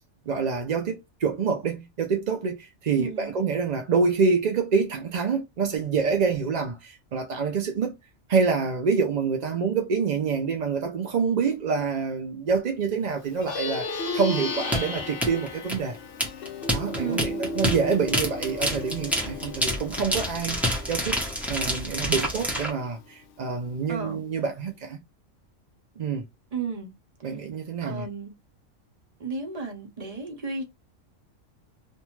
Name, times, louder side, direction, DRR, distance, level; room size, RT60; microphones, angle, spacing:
voice 1, 0.3-7.9 8.3-16.0 16.7-21.2 21.5-25.0 26.0-26.2 27.2-28.1, right 5 dB, 70° right, 0.4 m, -26 dB
voice 2, 3.0-3.3 17.0-17.4 23.9-24.2 26.5-26.9 27.8-28.3 29.2-30.6, right 4 dB, 35° right, 0.7 m, -33 dB
Plucked string instrument, 13.3-23.0, left 3 dB, 60° left, 0.6 m, -35 dB
sound 1, 14.7-22.7, equal, ahead, 0.6 m, -28 dB
2.6 x 2.2 x 3.0 m
omnidirectional pair, 1.4 m